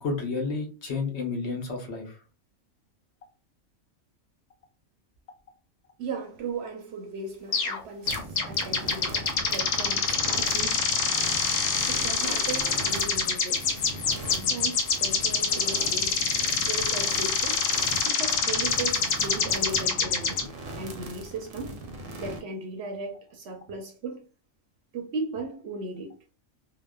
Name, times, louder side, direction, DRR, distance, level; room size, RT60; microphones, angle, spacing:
voice 1, 0.0-2.2, left 4 dB, 65° left, 0.9 m, -31 dB
voice 2, 6.0-10.8 11.8-16.3 16.6-17.7 18.0-20.4 20.8-21.8 22.2-24.2 24.9-26.1, right 3 dB, 65° right, 0.8 m, -37 dB
sound 1, 7.5-7.8 8.1-20.4, left 5 dB, 85° left, 1.0 m, -26 dB
sound 2, 8.1-22.4, right 1 dB, 90° right, 1.0 m, -39 dB
2.8 x 2.1 x 2.2 m
omnidirectional pair, 1.3 m